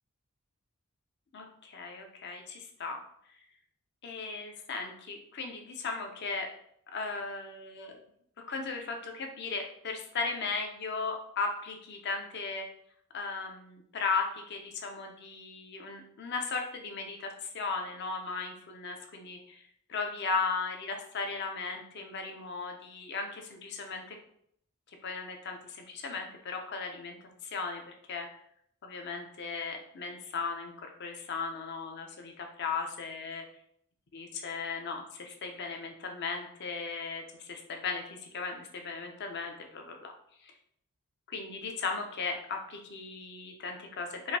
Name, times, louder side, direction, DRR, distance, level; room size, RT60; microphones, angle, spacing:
voice 1, 1.3-3.0 4.0-6.5 6.9-8.0 8.5-12.7 13.1-19.6 19.9-24.2 25.0-27.2 27.4-27.8 28.1-28.3 28.8-33.4 34.1-37.2 37.5-40.1 41.3-44.4, left 4 dB, 50° left, 3 dB, 0.6 m, -36 dB
4.8 x 2.6 x 2.7 m, 0.68 s
head